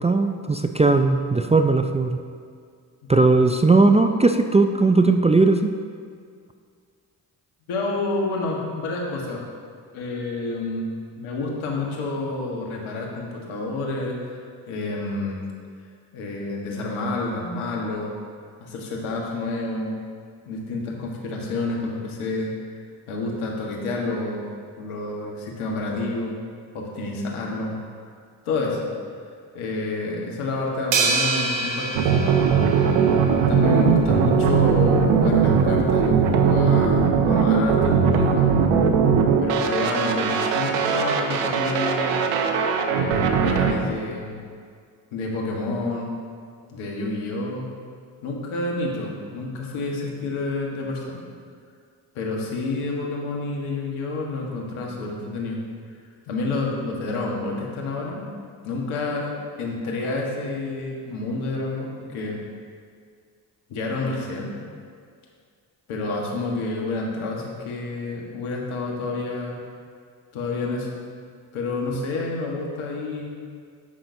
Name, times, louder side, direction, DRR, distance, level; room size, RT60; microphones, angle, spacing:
voice 1, 0.0-2.2 3.1-5.7, right 3 dB, 15° right, 6 dB, 0.4 m, -18 dB
voice 2, 7.7-9.4 9.9-10.9 11.2-14.4 14.7-15.4 16.1-18.1 18.6-20.0 20.4-22.5 23.1-24.5 24.8-26.4 26.7-27.8 28.4-28.9 29.5-32.6 33.5-38.6 39.4-42.2 42.9-44.4 45.1-46.1 46.7-47.7 48.2-51.2 52.1-55.6 56.3-58.3 58.6-59.3 59.6-62.4 63.7-64.5 65.9-69.6 70.3-70.9 71.5-73.3, left 2 dB, 75° left, -1 dB, 1.6 m, -29 dB
sound 1, 30.9-33.4, right 3 dB, 70° right, 1.4 m, -26 dB
sound 2, 31.9-43.7, right 6 dB, 85° right, 0.8 m, -20 dB
15.0 x 5.8 x 2.7 m, 2.1 s
hypercardioid pair, 45°, 49 cm